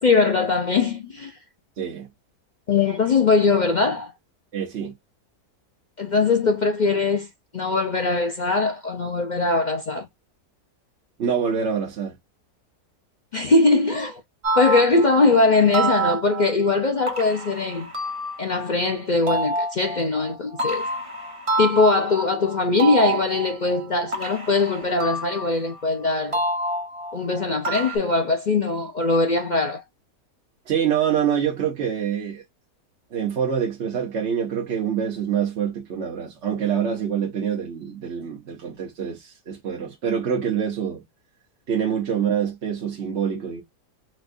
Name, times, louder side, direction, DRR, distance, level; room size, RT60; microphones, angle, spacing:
voice 1, 0.0-1.3 2.7-4.1 6.0-7.3 7.5-10.0 13.3-14.2 14.6-17.9 18.4-20.9 21.6-26.4 27.1-29.8, left 3 dB, 65° left, 0.4 m, -21 dB
voice 2, 1.8-2.1 4.5-4.9 11.2-12.2 30.7-32.4 33.1-41.0 41.7-43.6, right 8 dB, 50° right, 1.0 m, -25 dB
sound 1, 14.4-18.7 19.3-25.8 26.3-28.0, right 2 dB, 25° right, 0.9 m, -28 dB
4.3 x 2.3 x 2.5 m
omnidirectional pair, 1.7 m